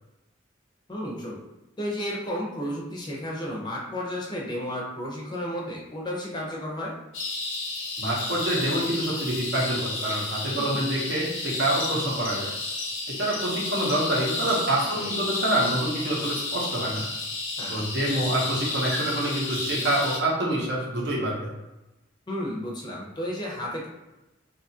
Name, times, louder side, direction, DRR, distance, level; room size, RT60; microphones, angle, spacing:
voice 1, 0.9-1.4 1.8-6.9 10.5-10.8 15.0-15.1 17.6-17.8 22.3-23.9, equal, 20° left, -3 dB, 0.5 m, -32 dB
sound 1, 7.1-20.2, left 2 dB, 75° left, 0.6 m, -32 dB
voice 2, 8.0-12.5 13.1-17.1 17.7-21.5, right 1 dB, 60° right, -3 dB, 0.7 m, -26 dB
2.7 x 2.3 x 2.7 m, 0.99 s
head